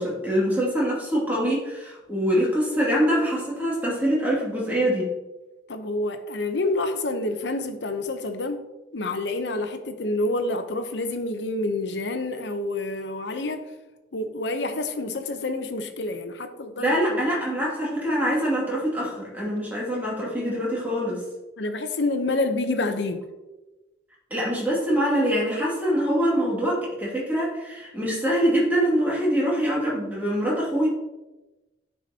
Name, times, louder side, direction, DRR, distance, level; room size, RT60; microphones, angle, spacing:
voice 1, 0.0-5.1 16.8-21.2 24.3-30.9, equal, 10° right, 2.4 m, -24 dB
voice 2, 5.7-8.6 8.9-13.7 14.1-17.2 21.6-23.2, left 2 dB, 70° left, 0.8 m, -28 dB
9.5 x 5.6 x 2.8 m
head